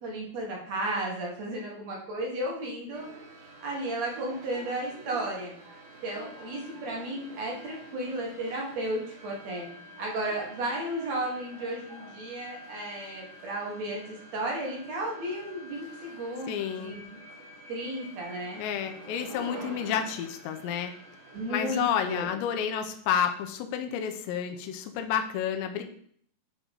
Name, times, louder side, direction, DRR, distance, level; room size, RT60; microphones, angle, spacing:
voice 1, 0.0-3.1 3.6-5.5 6.0-9.7 10.0-17.0 17.7-18.6 21.3-22.3, right 1 dB, 50° right, -2 dB, 2.5 m, -34 dB
sound 1, 2.9-22.2, right 2 dB, 65° right, 3.3 m, -47 dB
voice 2, 16.5-17.0 18.6-20.9 21.5-25.8, left 8 dB, 90° left, 5 dB, 2.9 m, -30 dB
11.0 x 3.6 x 5.4 m, 0.62 s
omnidirectional pair, 5.0 m